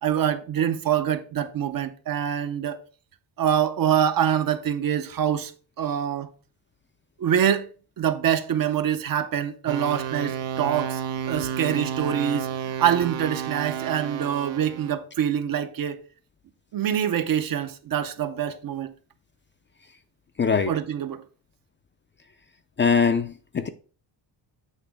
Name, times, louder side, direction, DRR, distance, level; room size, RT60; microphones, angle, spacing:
voice 1, 0.0-2.8 3.4-5.5 5.8-6.3 7.2-7.7 8.0-11.0 11.3-12.5 12.8-16.0 16.7-18.9 20.7-21.2, right 9 dB, 50° right, 0.7 m, -25 dB
sound 1, 9.7-14.9, right 8 dB, 85° right, 0.9 m, -31 dB
voice 2, 20.4-20.7 22.8-23.7, left 5 dB, 25° left, 0.4 m, -22 dB
8.3 x 3.0 x 4.7 m
cardioid pair, 115°, 44 cm